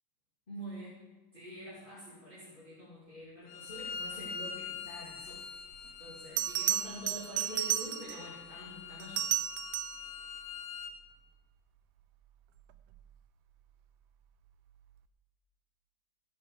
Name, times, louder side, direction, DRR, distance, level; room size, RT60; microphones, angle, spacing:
voice 1, 0.5-1.0 1.3-5.4 6.0-9.3, equal, 15° left, -8 dB, 2.1 m, -46 dB
Bowed string instrument, 3.5-10.9, left 6 dB, 80° left, 2.5 m, -44 dB
Bell, 5.7-5.8 6.4-8.3 9.0-10.1 12.8-13.0, right 13 dB, 80° right, 1.8 m, -33 dB
15.0 x 8.6 x 4.8 m, 1.2 s
omnidirectional pair, 4.0 m